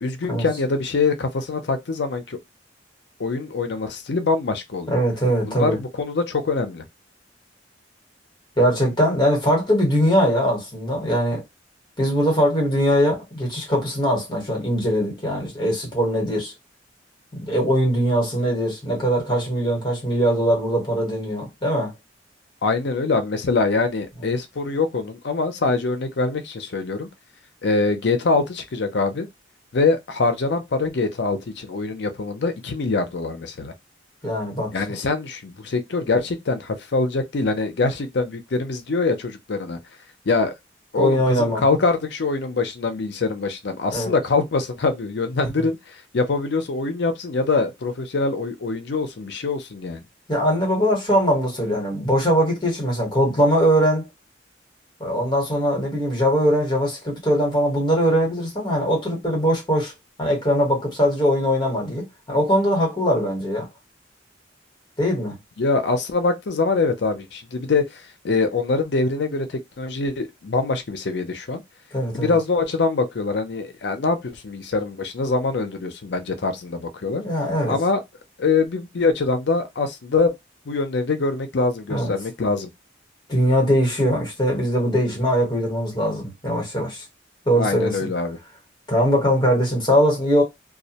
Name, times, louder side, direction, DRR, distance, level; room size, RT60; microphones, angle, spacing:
voice 1, 0.0-2.4 3.2-5.0 5.4-6.8 22.6-27.1 27.6-29.3 29.7-33.7 34.7-39.8 40.3-40.5 40.9-45.8 46.1-50.0 65.6-71.6 72.1-77.2 77.7-78.0 78.4-80.3 80.7-82.7 87.6-88.4, left 3 dB, 65° left, 0.5 m, -24 dB
voice 2, 4.9-5.8 8.6-11.4 12.0-16.5 17.4-21.9 34.2-35.0 40.9-41.6 43.9-44.1 50.3-54.1 55.0-59.9 60.2-63.7 65.0-65.3 71.9-72.3 77.2-77.8 81.9-82.1 83.3-87.0 87.5-88.1 88.9-90.4, equal, 25° left, 1.1 m, -21 dB
2.3 x 2.1 x 2.8 m
head